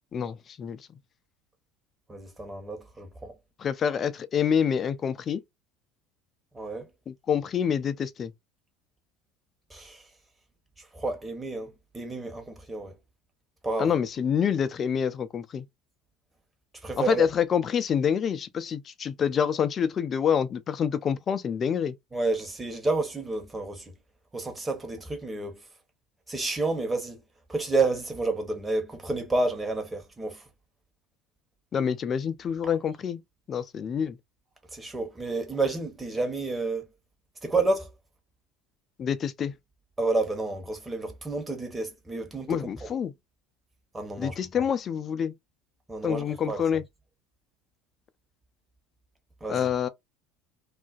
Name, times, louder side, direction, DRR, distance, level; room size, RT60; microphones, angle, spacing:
voice 1, 0.1-0.8 3.6-5.4 7.1-8.3 13.8-15.6 17.0-21.9 31.7-33.2 33.5-34.2 39.0-39.5 42.5-43.1 44.2-45.3 46.0-46.8 49.5-49.9, left 8 dB, 40° left, 0.4 m, -27 dB
voice 2, 2.1-3.3 6.5-6.9 9.7-10.0 10.8-13.0 13.6-13.9 16.8-17.3 22.1-23.9 24.3-25.6 26.3-27.2 27.5-30.4 34.7-36.9 37.4-37.9 40.0-42.9 43.9-44.4 45.9-46.6 49.4-49.7, right 3 dB, 15° right, 1.0 m, -30 dB
2.4 x 2.1 x 2.4 m
hypercardioid pair, 70°, 0 cm